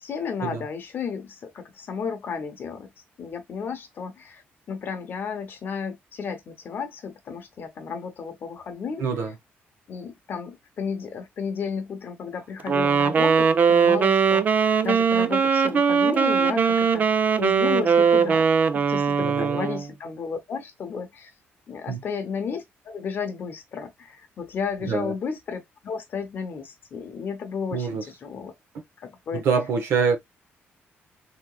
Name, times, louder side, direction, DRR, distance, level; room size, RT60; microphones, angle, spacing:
voice 1, 0.0-2.9 3.2-4.4 4.7-9.1 9.9-18.5 18.7-21.3 21.7-28.5 29.0-29.4, left 6 dB, 50° left, 0.9 m, -33 dB
voice 2, 9.0-9.3 19.2-19.6 21.9-22.0 24.8-25.1 27.7-28.0 29.3-30.2, right 5 dB, 70° right, 0.8 m, -25 dB
Wind instrument woodwind instrument, 12.7-19.9, right 6 dB, 40° right, 0.4 m, -20 dB
3.5 x 2.9 x 2.3 m
cardioid pair, 130°, 4 cm